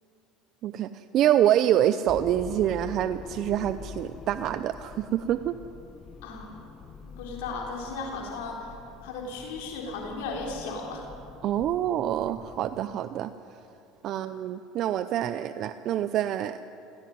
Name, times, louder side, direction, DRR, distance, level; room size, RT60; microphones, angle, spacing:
voice 1, 0.6-5.5 11.4-13.3 14.0-16.6, right 11 dB, 55° right, 12 dB, 0.6 m, -26 dB
sound 1, 2.1-12.8, left 5 dB, 30° left, 1.1 m, -45 dB
voice 2, 6.2-6.6 7.1-8.7 9.0-11.0 14.1-14.2, left 3 dB, 80° left, 0 dB, 3.9 m, -36 dB
17.5 x 17.0 x 9.6 m, 2.8 s
supercardioid pair, 105°, 0 cm